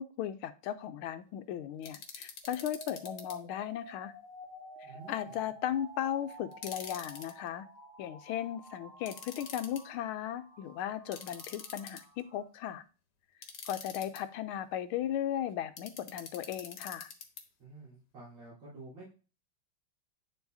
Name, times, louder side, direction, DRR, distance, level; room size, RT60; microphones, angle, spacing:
voice 1, 0.0-4.1 5.1-7.7 8.0-12.8 13.7-17.1, left 11 dB, 80° left, 12 dB, 1.4 m, -36 dB
sound 1, 1.8-3.3 6.5-7.3 9.1-9.8 11.1-12.2 13.4-14.2 15.8-17.4, left 6 dB, 55° left, 1.6 m, -45 dB
sound 2, 2.4-12.4, equal, 35° right, 2.7 m, -52 dB
voice 2, 4.8-5.3 17.6-19.1, right 2 dB, 90° right, -10 dB, 4.5 m, -50 dB
9.8 x 7.1 x 2.7 m, 0.36 s
omnidirectional pair, 2.3 m